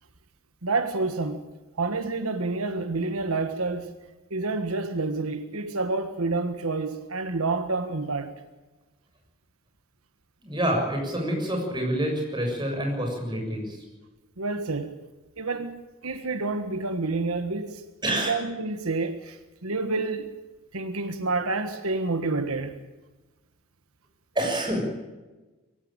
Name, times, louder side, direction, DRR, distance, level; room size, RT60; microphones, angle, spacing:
voice 1, 0.6-1.5 1.8-4.0 4.3-8.3 14.4-15.0 15.4-15.7 16.0-17.8 18.1-20.3 20.7-22.8, right 3 dB, 80° right, 1.4 m, -28 dB
voice 2, 10.4-13.8 18.0-18.3 24.4-24.9, right 1 dB, 20° right, 6.9 m, -27 dB
23.0 x 15.5 x 8.8 m
head